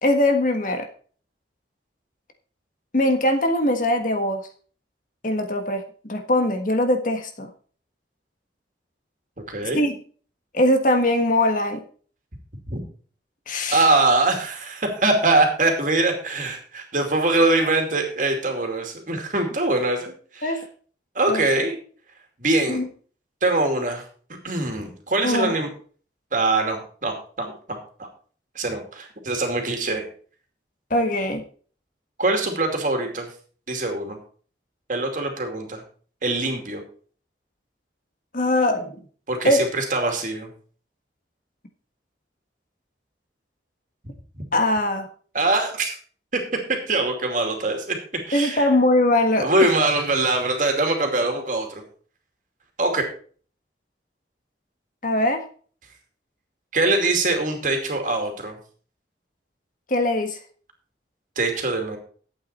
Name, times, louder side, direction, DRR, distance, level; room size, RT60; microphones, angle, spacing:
voice 1, 0.0-0.9 2.9-4.4 5.2-7.5 9.7-9.9 10.5-11.8 13.5-13.9 20.4-20.6 21.3-21.4 22.7-22.8 25.2-25.5 30.9-31.4 38.3-39.0 39.4-39.6 44.5-45.1 48.3-49.5 55.0-55.4 59.9-60.4, left 1 dB, 45° left, 6 dB, 1.5 m, -21 dB
voice 2, 9.5-9.8 12.7-12.8 13.7-20.5 21.1-21.8 22.4-22.8 23.4-24.0 24.4-25.7 26.3-28.1 28.5-30.1 32.2-33.3 33.7-34.2 34.9-35.8 36.2-36.8 39.3-40.5 44.3-44.4 45.3-45.9 46.3-46.4 46.9-48.0 48.3-48.7 49.4-51.8 52.8-53.0 56.7-58.5 61.4-62.0, right 2 dB, 45° right, 4 dB, 2.6 m, -23 dB
11.5 x 8.5 x 4.3 m, 0.43 s
head